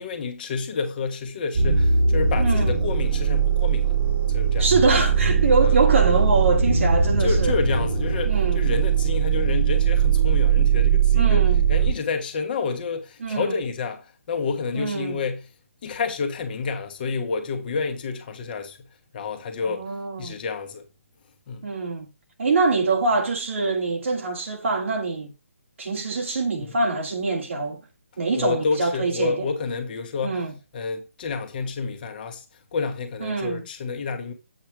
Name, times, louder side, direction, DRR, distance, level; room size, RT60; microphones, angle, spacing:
voice 1, 0.0-4.0 4.3-4.7 5.6-5.8 7.2-15.5 15.8-18.9 19.1-19.8 20.2-20.9 21.5-21.7 26.6-26.7 28.4-30.4 30.7-32.4 32.7-34.3, left 5 dB, 40° left, 1.2 m, -29 dB
sound 1, 1.5-11.9, right 6 dB, 35° right, 1.5 m, -20 dB
voice 2, 2.4-2.8 4.6-7.6 8.2-8.6 11.1-11.6 13.2-13.6 14.7-15.2 19.6-20.4 21.6-22.1 22.4-25.3 25.8-27.8 28.2-29.5 30.2-30.6 33.2-33.6, right 3 dB, 60° right, 1.5 m, -24 dB
8.0 x 4.3 x 4.8 m
figure-of-eight pair, 145°, 8 cm